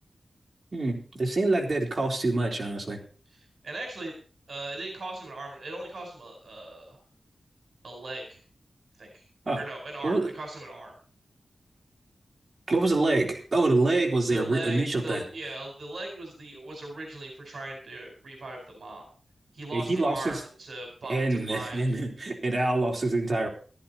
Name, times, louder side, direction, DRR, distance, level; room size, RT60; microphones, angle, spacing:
voice 1, 0.7-3.0 9.5-9.6 10.0-10.3 12.7-15.2 19.7-20.4 21.1-23.5, right 2 dB, 35° right, 0 dB, 3.8 m, -26 dB
voice 2, 3.3-4.2 4.5-7.0 7.8-8.4 9.0-9.2 9.6-10.9 14.3-19.0 19.5-21.9, right 2 dB, 65° right, 2 dB, 4.6 m, -39 dB
14.5 x 13.5 x 4.3 m, 0.40 s
wide cardioid pair, 130°, 0 cm